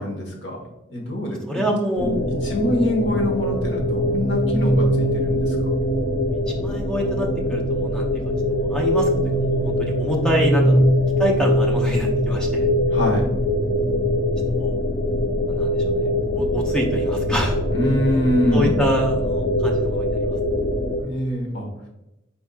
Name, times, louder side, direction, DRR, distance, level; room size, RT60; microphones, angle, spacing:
voice 1, 0.0-1.4 2.0-2.1 2.4-5.6 12.9-13.3 17.7-18.8 21.0-21.7, left 1 dB, 65° left, -1 dB, 1.2 m, -24 dB
voice 2, 1.2-2.1 6.5-8.1 8.5-9.1 9.4-10.8 11.2-12.7 14.6-14.8 15.5-16.1 16.3-17.6 18.5-20.4, equal, 5° left, -1 dB, 0.6 m, -26 dB
sound 1, 2.0-21.0, equal, 50° left, 0.5 m, -22 dB
4.5 x 4.1 x 2.3 m, 0.91 s
head